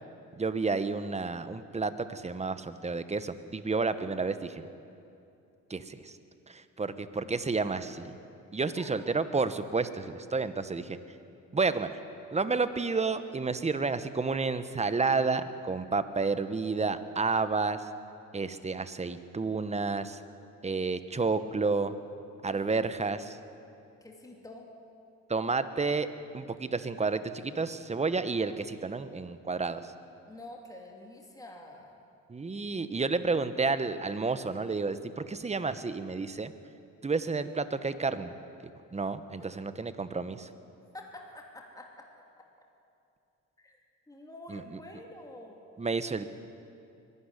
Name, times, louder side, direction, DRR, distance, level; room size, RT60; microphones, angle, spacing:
voice 1, 0.4-4.6 5.7-6.1 6.5-8.1 8.5-11.0 11.5-11.9 12.3-17.8 18.3-20.2 20.6-21.9 22.4-23.4 25.3-26.1 26.3-29.9 32.3-36.5 37.0-38.3 38.9-40.5 44.5-44.6 45.8-46.2, right 4 dB, 20° right, 12 dB, 1.1 m, -30 dB
voice 2, 8.6-9.0 22.5-22.6 24.0-24.7 30.3-32.0 40.9-42.1 42.4-42.5 43.6-43.8 44.1-45.6, left 1 dB, 10° left, 0 dB, 2.9 m, -48 dB
22.5 x 12.5 x 9.9 m, 2.6 s
cardioid pair, 90°, 30 cm